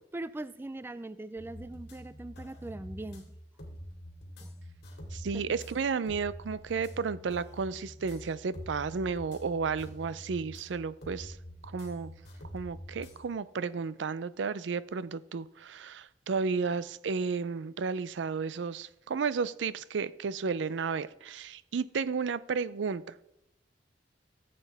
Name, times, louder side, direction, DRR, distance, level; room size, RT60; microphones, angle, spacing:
voice 1, 0.0-3.3 4.4-4.5 5.3-5.6, right 2 dB, 10° right, 14 dB, 0.3 m, -41 dB
sound 1, 1.4-13.3, equal, 60° left, 2.3 m, -46 dB
voice 2, 5.1-11.4 11.6-12.1 12.5-23.2, right 5 dB, 75° right, 17 dB, 0.4 m, -33 dB
14.0 x 7.7 x 3.5 m, 0.84 s
head